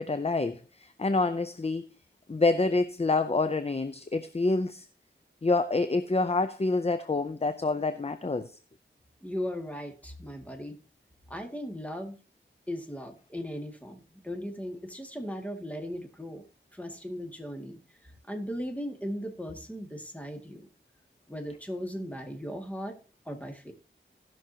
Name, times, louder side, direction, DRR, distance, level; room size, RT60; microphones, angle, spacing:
voice 1, 0.0-1.9 2.3-4.9 5.4-8.5, left 3 dB, 30° left, 10 dB, 0.6 m, -27 dB
voice 2, 9.2-10.8 11.3-12.2 12.7-16.4 16.7-17.8 18.3-20.7 21.3-23.0 23.3-23.7, equal, 5° left, 3 dB, 2.1 m, -37 dB
17.5 x 6.2 x 2.9 m, 0.36 s
wide cardioid pair, 40°, 21 cm